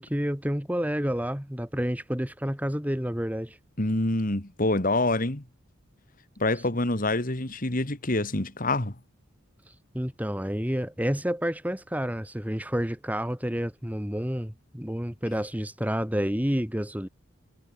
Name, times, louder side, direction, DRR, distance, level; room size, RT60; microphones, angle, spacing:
voice 1, 0.0-3.6 9.9-17.1, equal, 10° right, 2.1 m, -29 dB
voice 2, 3.8-5.4 6.4-8.9, left 2 dB, 45° left, 2.3 m, -26 dB
head